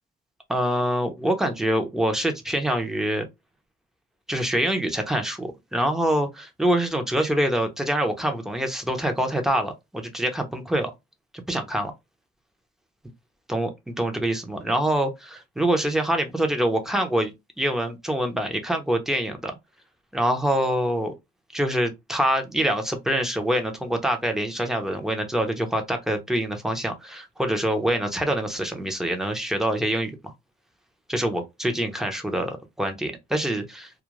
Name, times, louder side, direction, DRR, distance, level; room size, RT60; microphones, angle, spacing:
voice 1, 0.5-3.2 4.3-10.9 11.3-11.9 13.5-13.7 14.0-17.3 17.6-19.6 20.1-21.1 21.5-30.3 31.1-33.9, right 1 dB, ahead, 0.7 m, -25 dB
2.4 x 2.2 x 3.0 m
cardioid pair, 90°, 20 cm